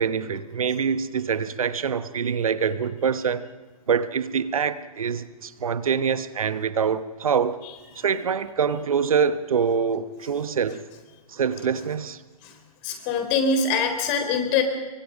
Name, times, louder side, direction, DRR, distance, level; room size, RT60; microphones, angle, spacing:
voice 1, 0.0-3.5 3.9-7.6 8.0-10.8 11.3-12.2, right 6 dB, 65° right, 1.1 m, -25 dB
voice 2, 12.8-14.6, left 5 dB, 35° left, 3.9 m, -23 dB
24.5 x 24.0 x 5.2 m
figure-of-eight pair, 115°, 19 cm